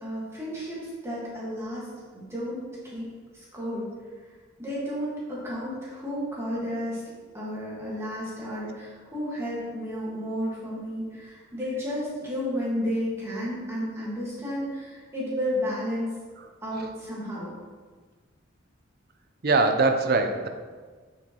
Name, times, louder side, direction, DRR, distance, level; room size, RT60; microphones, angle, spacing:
voice 1, 0.0-1.9 2.1-3.1 3.3-3.9 4.6-7.0 7.3-16.1 16.6-17.5, equal, 15° right, -7 dB, 1.7 m, -32 dB
voice 2, 19.4-20.5, right 3 dB, 50° right, 5 dB, 0.6 m, -23 dB
7.3 x 6.4 x 3.0 m, 1.5 s
head